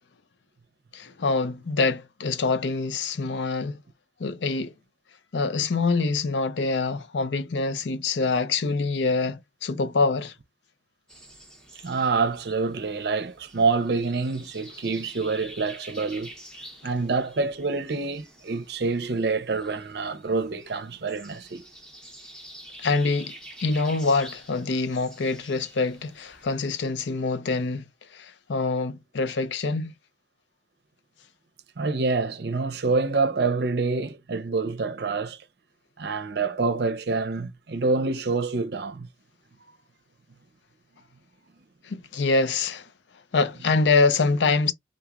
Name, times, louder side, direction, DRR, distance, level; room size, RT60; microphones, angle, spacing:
voice 1, 0.9-3.8 4.2-4.7 5.3-10.3 22.8-23.3 23.6-27.8 28.1-29.9 41.8-42.9 43.3-44.7, left 3 dB, 80° left, 0.5 m, -25 dB
sound 1, 11.1-26.6, right 1 dB, 5° left, 1.1 m, -48 dB
voice 2, 11.7-16.3 16.8-21.6 31.8-35.4 36.0-39.1, right 4 dB, 60° right, 0.6 m, -27 dB
3.8 x 2.9 x 2.4 m
head